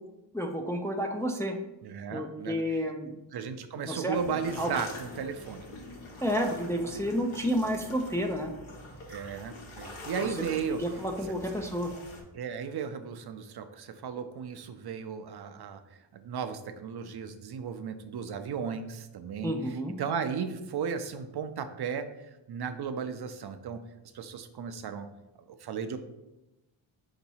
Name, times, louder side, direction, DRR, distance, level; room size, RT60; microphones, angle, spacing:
voice 1, 0.3-1.6 2.1-3.1 3.9-4.2 4.6-4.7 6.2-8.5 10.3-10.4 10.8-11.9 19.4-19.9, equal, 5° left, 3 dB, 0.3 m, -30 dB
voice 2, 1.8-2.6 3.1-5.7 9.1-10.8 11.3-11.4 12.3-22.1 22.5-23.8 24.1-25.1 25.5-26.0, right 6 dB, 55° right, 9 dB, 0.5 m, -35 dB
sound 1, 4.1-12.2, left 2 dB, 75° left, 1.3 m, -44 dB
4.5 x 2.9 x 4.1 m, 0.95 s
cardioid pair, 85°, 49 cm